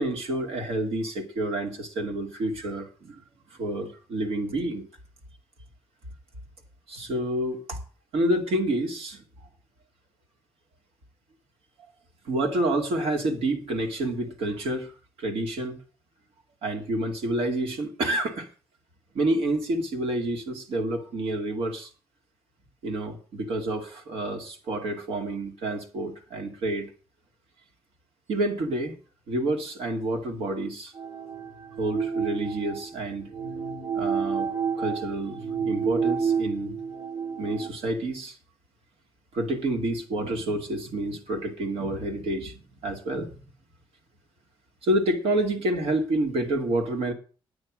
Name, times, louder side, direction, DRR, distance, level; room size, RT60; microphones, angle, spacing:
voice 1, 0.0-3.2 3.5-4.9 6.9-7.8 8.1-9.5 12.2-14.9 15.2-15.8 16.6-18.5 19.1-21.9 22.8-26.9 28.3-28.9 29.3-30.9 31.8-33.3 33.9-34.5 34.8-36.7 37.4-38.4 39.3-43.3 44.8-47.1, right 1 dB, 90° right, 4 dB, 2.5 m, -28 dB
sound 1, 30.9-37.7, right 6 dB, 65° right, 3.3 m, -30 dB
9.6 x 9.2 x 6.3 m, 0.37 s
cardioid pair, 120°, 10 cm